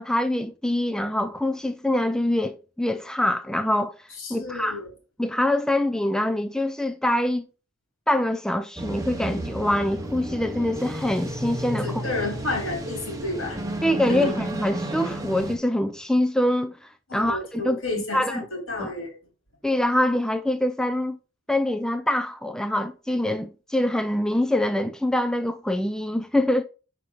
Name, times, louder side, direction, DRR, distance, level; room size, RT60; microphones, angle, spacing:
voice 1, 0.0-4.8 5.2-7.4 8.1-12.0 13.8-16.7 17.1-17.8 18.1-18.3 18.8-18.9 19.6-21.2 21.5-26.6, left 1 dB, 5° left, 0.3 m, -24 dB
voice 2, 4.2-4.9 11.8-13.6 14.1-14.3 17.1-19.2, left 2 dB, 75° left, 3.4 m, -31 dB
sound 1, 8.8-15.6, right 1 dB, 15° right, 0.9 m, -32 dB
5.8 x 5.1 x 4.8 m
head